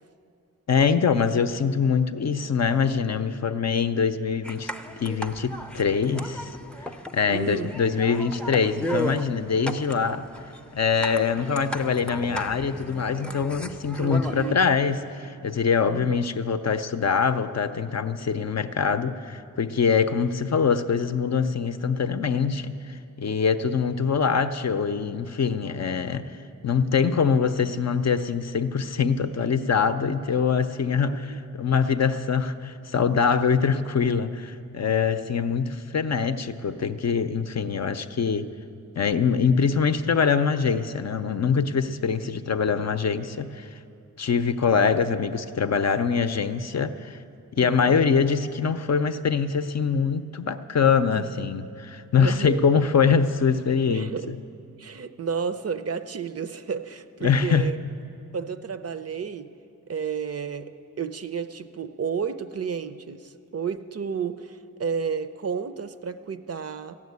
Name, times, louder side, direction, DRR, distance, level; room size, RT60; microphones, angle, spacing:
voice 1, 0.7-4.7 5.0-6.6 7.1-10.3 10.7-26.3 26.6-38.5 38.9-43.7 44.2-47.2 47.5-54.3 57.2-57.7, left 6 dB, 50° left, 9 dB, 0.5 m, -24 dB
sound 1, 4.4-14.5, equal, 5° left, 0.5 m, -35 dB
voice 2, 7.3-7.8 14.0-14.6 15.8-16.2 31.0-31.4 47.6-47.9 51.1-51.4 52.2-52.7 53.9-54.4 54.8-57.8 58.3-59.5 59.9-60.7 61.0-67.0, right 6 dB, 45° right, 10 dB, 0.5 m, -32 dB
14.5 x 7.4 x 9.5 m, 2.6 s
wide cardioid pair, 85°, 34 cm